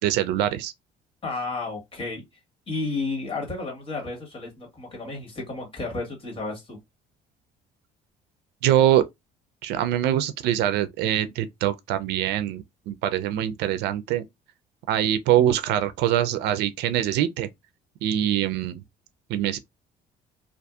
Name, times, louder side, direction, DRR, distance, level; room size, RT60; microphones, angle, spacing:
voice 1, 0.0-0.7 8.6-9.0 9.6-14.2 14.9-17.5 18.0-18.8 19.3-19.6, right 11 dB, 85° right, 0.4 m, -23 dB
voice 2, 1.2-2.2 2.7-6.8, left 3 dB, 30° left, 1.6 m, -32 dB
2.6 x 2.4 x 2.3 m
cardioid pair, 110°, 17 cm